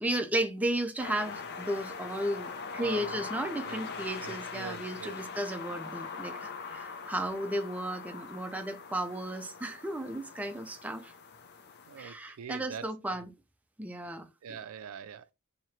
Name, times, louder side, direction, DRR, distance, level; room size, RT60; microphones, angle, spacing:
voice 1, 0.0-11.1 12.0-13.3 13.8-14.6, right 1 dB, 5° right, 0.4 m, -34 dB
sound 1, 1.0-12.0, left 5 dB, 50° left, 0.5 m, -42 dB
voice 2, 2.8-3.2 3.7-5.2 11.9-12.9 13.1-13.2 14.4-15.3, right 7 dB, 80° right, 0.4 m, -44 dB
3.0 x 2.8 x 4.3 m
head